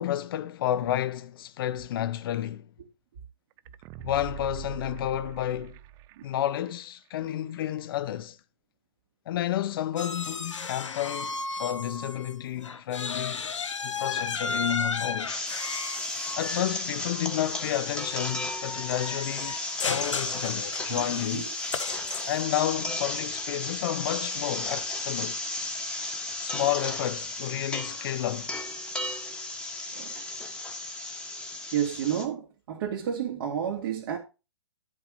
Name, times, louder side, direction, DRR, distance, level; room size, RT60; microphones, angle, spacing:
voice 1, 0.0-2.7 4.0-5.8 6.2-8.4 9.3-15.4 16.4-19.6 19.9-21.5 22.2-25.4 26.4-28.5, left 12 dB, 50° left, 0.7 m, -31 dB
sound 1, 3.6-6.5 6.8-6.9, right 14 dB, 20° right, 0.4 m, -42 dB
sound 2, 10.0-12.3 12.6-22.6, left 4 dB, 80° left, 1.1 m, -34 dB
sound 3, 15.3-32.3, left 2 dB, 5° left, 1.4 m, -34 dB
voice 2, 20.9-21.5 29.9-30.2 31.7-34.2, right 9 dB, 50° right, 2.4 m, -31 dB
11.0 x 4.8 x 5.2 m
hypercardioid pair, 130°, 16 cm